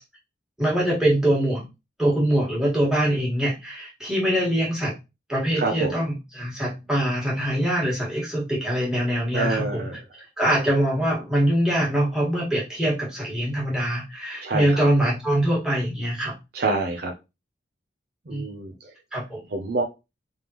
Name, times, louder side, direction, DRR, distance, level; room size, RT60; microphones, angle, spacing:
voice 1, 0.6-1.6 2.0-4.9 5.3-9.9 10.4-16.3 18.3-18.4 19.1-19.4, right 1 dB, 5° right, -5 dB, 1.7 m, -23 dB
voice 2, 5.6-6.0 9.3-9.9 14.4-14.8 16.5-17.1 18.3-18.7 19.5-19.8, right 3 dB, 55° right, 2 dB, 0.6 m, -26 dB
3.5 x 3.4 x 3.0 m, 0.25 s
head